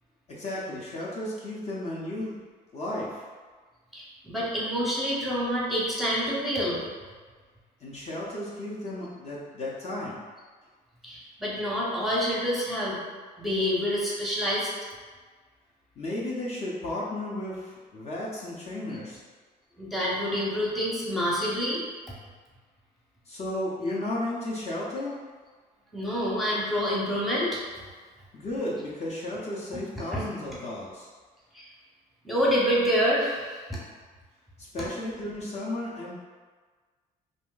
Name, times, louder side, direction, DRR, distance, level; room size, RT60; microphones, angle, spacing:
voice 1, 0.3-2.4 2.7-3.3 7.8-10.2 16.0-19.2 23.3-25.2 28.3-31.1 34.6-36.1, left 1 dB, 40° left, -5 dB, 0.6 m, -34 dB
voice 2, 3.9-6.8 11.0-13.0 13.4-14.7 19.8-21.8 25.9-27.5 30.1-30.3 31.5-31.6 32.2-33.8, equal, ahead, -7 dB, 0.8 m, -27 dB
2.5 x 2.1 x 3.7 m, 1.4 s
cardioid pair, 110°, 17 cm